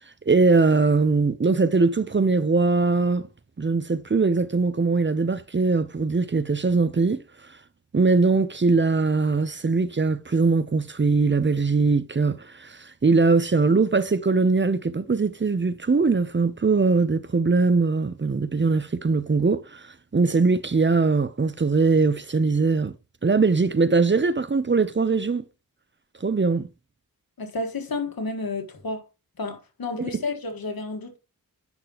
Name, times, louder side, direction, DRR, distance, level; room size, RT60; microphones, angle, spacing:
voice 1, 0.3-3.2 3.6-7.2 7.9-22.9 23.2-25.4 26.2-26.7, right 4 dB, 30° right, 0.7 m, -21 dB
voice 2, 27.4-29.1 29.4-31.2, left 3 dB, 80° left, 1.7 m, -31 dB
8.7 x 5.9 x 3.0 m
wide cardioid pair, 65°, 36 cm